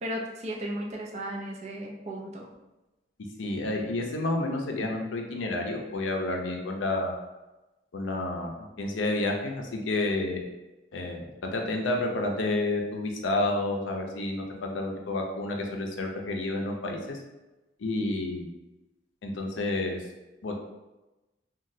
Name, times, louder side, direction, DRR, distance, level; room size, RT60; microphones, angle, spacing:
voice 1, 0.0-2.5, equal, 35° right, -1 dB, 0.4 m, -35 dB
voice 2, 3.4-7.2 7.9-8.5 8.8-10.5 10.9-17.2 17.8-18.5 19.2-20.0 20.4-20.5, left 2 dB, 85° left, 2 dB, 0.5 m, -30 dB
3.0 x 2.3 x 2.6 m, 1.1 s
head